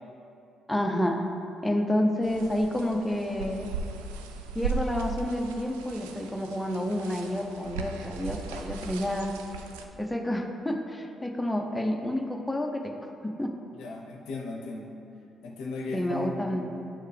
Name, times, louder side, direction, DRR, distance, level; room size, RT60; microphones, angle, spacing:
voice 1, 0.7-1.2 1.6-3.7 4.5-9.3 10.0-13.1 13.4-13.5 15.9-16.7, left 1 dB, 10° left, 3 dB, 0.6 m, -29 dB
sound 1, 2.2-9.9, right 4 dB, 85° right, 0.3 m, -37 dB
voice 2, 13.8-14.9 15.4-16.9, left 3 dB, 75° left, 0 dB, 0.6 m, -37 dB
7.5 x 4.6 x 3.3 m, 2.7 s
hypercardioid pair, 50°, 0 cm